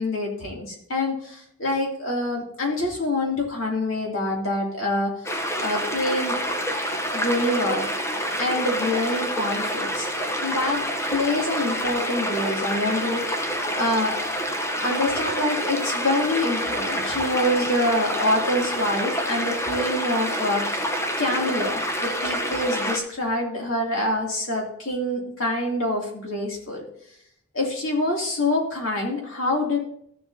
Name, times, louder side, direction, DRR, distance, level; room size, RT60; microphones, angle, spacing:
voice 1, 0.0-5.3 5.6-6.4 7.1-7.8 8.4-10.1 10.4-14.3 14.6-20.9 21.2-26.8 27.5-29.8, left 1 dB, 65° left, 0 dB, 2.6 m, -26 dB
sound 1, 5.2-23.0, equal, 10° left, 0.9 m, -27 dB
14.5 x 7.2 x 2.7 m, 0.68 s
head